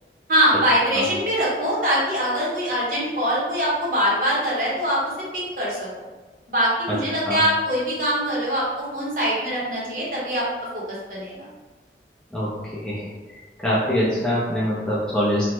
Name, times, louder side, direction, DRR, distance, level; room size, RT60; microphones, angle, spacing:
voice 1, 0.3-5.0 5.3-5.9 6.5-10.5 10.7-11.5 14.0-14.1, equal, 50° right, -6 dB, 0.9 m, -23 dB
voice 2, 12.3-13.1 13.6-15.5, equal, 5° left, -8 dB, 0.4 m, -24 dB
2.9 x 2.1 x 3.2 m, 1.3 s
head